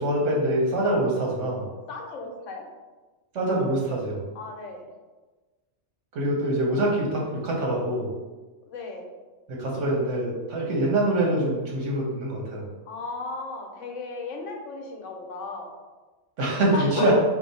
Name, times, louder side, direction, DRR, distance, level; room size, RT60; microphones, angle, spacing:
voice 1, 0.0-1.7 3.3-4.2 6.1-8.1 9.5-12.6 16.4-17.1, right 1 dB, 80° right, -3 dB, 1.2 m, -25 dB
voice 2, 1.9-2.6 4.3-4.9 8.7-9.1 12.9-15.7 16.7-17.1, left 3 dB, 85° left, 2 dB, 0.9 m, -35 dB
3.0 x 2.0 x 3.9 m, 1.2 s
omnidirectional pair, 1.3 m